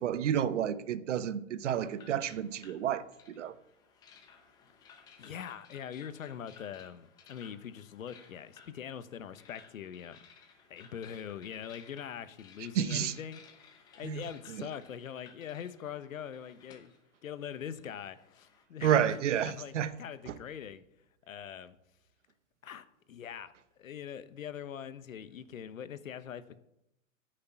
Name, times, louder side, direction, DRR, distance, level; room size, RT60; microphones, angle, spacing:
voice 1, 0.0-3.5 12.7-13.1 14.0-14.2 14.5-14.7 18.8-19.9 20.3-20.4, right 9 dB, 65° right, 0.9 m, -30 dB
sound 1, 1.7-18.6, left 6 dB, 10° left, 0.7 m, -59 dB
voice 2, 5.2-10.2 10.7-13.7 14.0-16.9 17.2-20.8 21.3-21.8 22.6-23.5 23.8-26.6, left 8 dB, 85° left, 1.1 m, -43 dB
9.7 x 6.7 x 9.0 m
hypercardioid pair, 160°, 39 cm